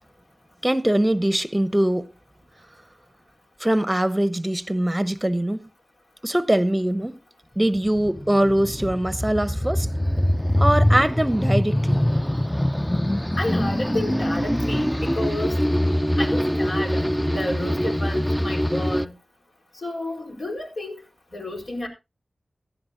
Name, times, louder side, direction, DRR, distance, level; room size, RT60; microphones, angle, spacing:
voice 1, 0.6-2.1 3.6-5.7 6.2-7.2 7.6-9.9 10.6-12.0, right 1 dB, 15° right, 0.9 m, -22 dB
sound 1, 7.7-19.1, equal, 5° left, 0.6 m, -23 dB
voice 2, 13.4-15.5 16.2-17.0 17.3-19.1 19.8-20.9 21.3-21.9, left 1 dB, 70° left, 4.3 m, -30 dB
16.5 x 11.5 x 2.6 m
cardioid pair, 50°, 0 cm